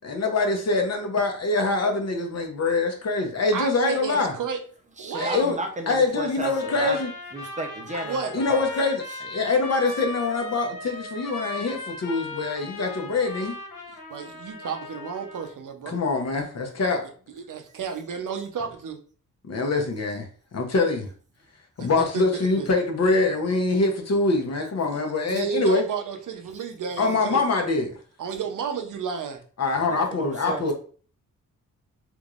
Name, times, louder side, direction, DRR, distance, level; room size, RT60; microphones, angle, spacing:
voice 1, 0.0-4.3 5.2-5.5 5.9-7.1 8.3-13.5 15.9-17.0 19.5-20.2 20.5-21.1 21.8-25.8 27.0-27.9 29.6-30.7, left 3 dB, 50° left, 0.8 m, -24 dB
voice 2, 3.5-4.6 5.0-5.4 8.0-8.4 14.1-16.0 17.3-19.0 21.8-22.7 24.9-25.0 25.3-27.4 28.2-29.4, right 6 dB, 65° right, 0.7 m, -32 dB
voice 3, 5.0-7.0 7.3-8.7 9.1-9.2 29.9-30.7, right 2 dB, 20° right, 0.6 m, -33 dB
Trumpet, 6.4-15.5, left 3 dB, 80° left, 1.0 m, -38 dB
3.5 x 3.1 x 2.4 m
wide cardioid pair, 115°, 33 cm